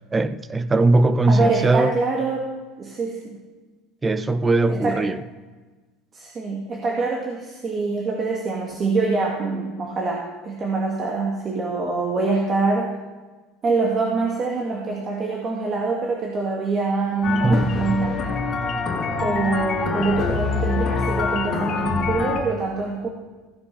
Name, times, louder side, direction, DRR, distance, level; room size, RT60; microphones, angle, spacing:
voice 1, 0.1-1.9 4.0-5.2 17.4-17.8, right 2 dB, 20° right, 0.6 m, -19 dB
voice 2, 1.3-3.4 4.7-5.0 6.1-13.0 13.6-18.2 19.2-23.1, right 3 dB, 35° right, 2.0 m, -25 dB
sound 1, 17.2-22.4, left 4 dB, 40° left, 2.8 m, -25 dB
16.0 x 6.1 x 5.7 m
supercardioid pair, 110°, 0 cm